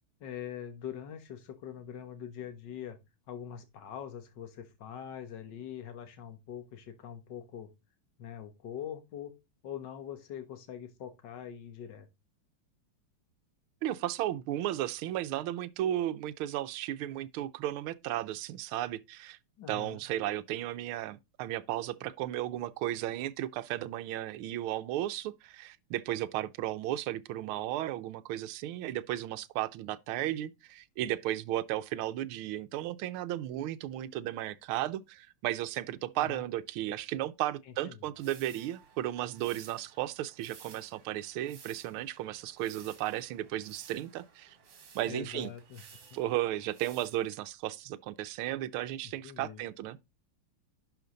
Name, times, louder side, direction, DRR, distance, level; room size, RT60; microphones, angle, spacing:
voice 1, 0.2-3.0 3.3-7.7 8.2-9.3 9.6-12.1 19.6-20.0 36.2-36.5 37.7-38.0 45.1-46.0 49.2-49.6, left 9 dB, 55° left, 1.9 m, -43 dB
voice 2, 13.8-19.4 19.7-44.6 44.9-45.5 46.1-50.0, right 13 dB, 80° right, 1.4 m, -34 dB
sound 1, 38.1-47.5, right 6 dB, 60° right, 2.3 m, -56 dB
11.0 x 5.1 x 3.8 m
omnidirectional pair, 2.4 m